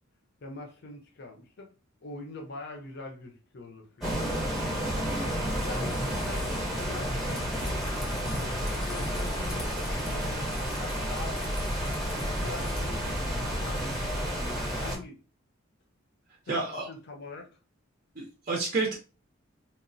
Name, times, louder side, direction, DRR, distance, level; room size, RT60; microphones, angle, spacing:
voice 1, 0.4-1.7 2.0-4.1 5.6-11.4 12.1-15.2 16.5-17.5, left 3 dB, 55° left, 0.6 m, -44 dB
sound 1, 4.0-15.0, equal, ahead, 0.7 m, -31 dB
raw vero gunshots, 4.8-12.8, left 1 dB, 90° left, 0.9 m, -46 dB
voice 2, 16.5-16.9 18.2-18.9, right 3 dB, 40° right, 0.5 m, -30 dB
2.9 x 2.0 x 2.5 m
head